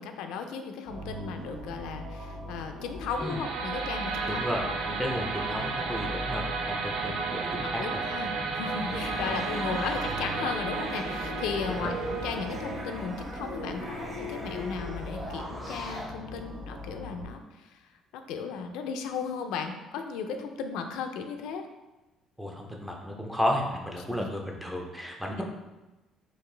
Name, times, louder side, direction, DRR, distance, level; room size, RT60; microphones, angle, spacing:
voice 1, 0.0-4.7 5.2-5.3 7.1-7.2 7.6-17.8 18.1-21.7 24.2-24.3, left 5 dB, 90° left, 6 dB, 0.3 m, -36 dB
sound 1, 0.9-17.3, left 1 dB, 35° right, 1.1 m, -41 dB
sound 2, 3.1-14.1, right 4 dB, 80° right, 0.4 m, -34 dB
voice 2, 4.2-7.8 8.2-8.3 8.9-9.0 11.8-11.9 22.4-25.4, left 1 dB, ahead, 0 dB, 0.4 m, -33 dB
sound 3, 8.9-16.0, equal, 20° right, 0.8 m, -39 dB
4.0 x 2.4 x 3.2 m, 1.1 s
cardioid pair, 170°, 0 cm